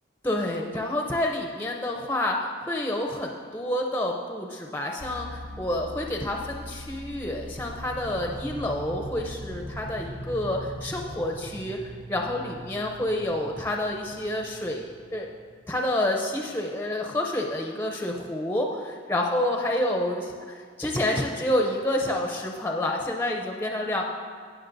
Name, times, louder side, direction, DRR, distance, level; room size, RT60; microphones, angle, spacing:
voice 1, 0.2-15.3 15.7-24.0, left 1 dB, 10° left, 1 dB, 0.5 m, -28 dB
sound 1, 5.0-16.4, equal, 70° right, 0.8 m, -41 dB
18.0 x 6.3 x 2.6 m, 2.1 s
head